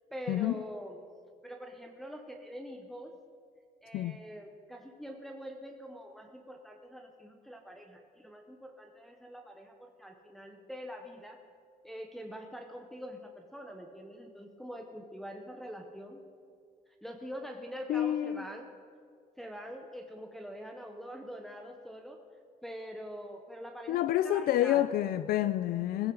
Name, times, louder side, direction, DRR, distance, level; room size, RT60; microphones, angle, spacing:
voice 1, 0.1-1.0 1.4-3.2 3.8-11.4 11.8-16.2 17.0-18.7 19.4-22.2 22.6-24.9, equal, ahead, 0.8 m, -44 dB
voice 2, 17.9-18.4 23.9-26.1, left 12 dB, 75° left, 0.4 m, -28 dB
17.0 x 15.5 x 3.8 m
cardioid pair, 170°, 16 cm